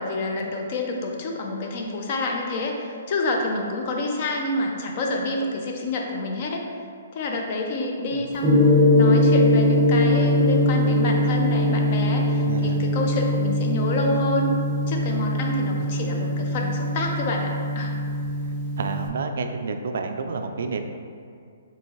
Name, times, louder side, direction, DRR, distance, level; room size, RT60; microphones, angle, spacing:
voice 1, 0.0-6.6 7.1-14.5 14.9-18.0, left 2 dB, 40° left, 1 dB, 0.5 m, -28 dB
Gong, 8.4-19.1, left 1 dB, 15° right, 0.5 m, -21 dB
voice 2, 12.4-12.8 15.8-15.9 18.8-20.8, right 4 dB, 65° right, 6 dB, 0.3 m, -30 dB
4.4 x 2.9 x 3.0 m, 2.3 s
hypercardioid pair, 155°, 0 cm